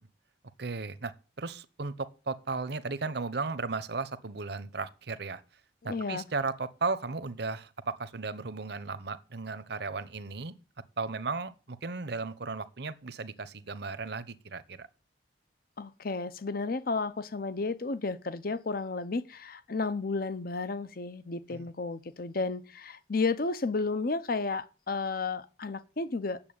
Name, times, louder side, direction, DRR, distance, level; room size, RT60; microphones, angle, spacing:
voice 1, 0.6-5.4 5.8-10.5 11.0-14.9 21.5-21.7, right 4 dB, 60° right, 0.9 m, -35 dB
voice 2, 5.8-6.2 15.8-26.4, left 3 dB, 50° left, 0.7 m, -32 dB
8.9 x 7.1 x 8.8 m
head